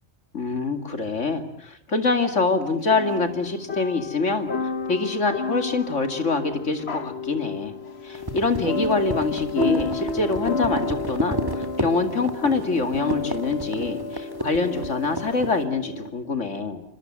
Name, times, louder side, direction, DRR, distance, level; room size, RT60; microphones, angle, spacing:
voice 1, 0.3-7.7 8.0-16.8, left 3 dB, 90° left, 7 dB, 2.8 m, -25 dB
sound 1, 2.9-16.1, left 3 dB, 60° left, 1.6 m, -31 dB
sound 2, 8.1-15.6, right 1 dB, 20° right, 2.4 m, -32 dB
27.0 x 25.0 x 7.7 m, 0.64 s
omnidirectional pair, 1.2 m